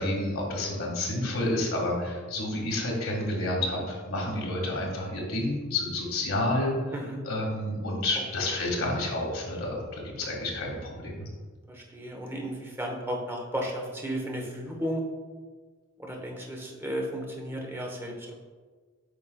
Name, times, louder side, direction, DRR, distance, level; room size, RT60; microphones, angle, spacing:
voice 1, 0.0-6.7 7.2-11.3, left 1 dB, 75° left, -2 dB, 1.6 m, -30 dB
voice 2, 11.7-15.0 16.0-18.3, equal, 10° right, 0 dB, 0.9 m, -34 dB
8.5 x 5.0 x 2.2 m, 1.5 s
head